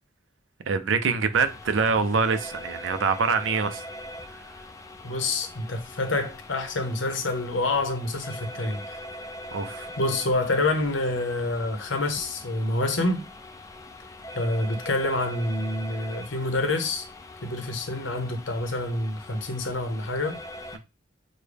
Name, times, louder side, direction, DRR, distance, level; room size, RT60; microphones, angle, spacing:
voice 1, 0.7-3.8 9.5-9.9, right 5 dB, 85° right, 0.5 m, -25 dB
sound 1, 1.3-20.8, left 1 dB, 15° left, 0.4 m, -42 dB
voice 2, 5.0-9.0 10.0-13.2 14.3-17.0 17.4-20.4, left 2 dB, 80° left, 0.9 m, -27 dB
6.4 x 2.2 x 3.4 m
head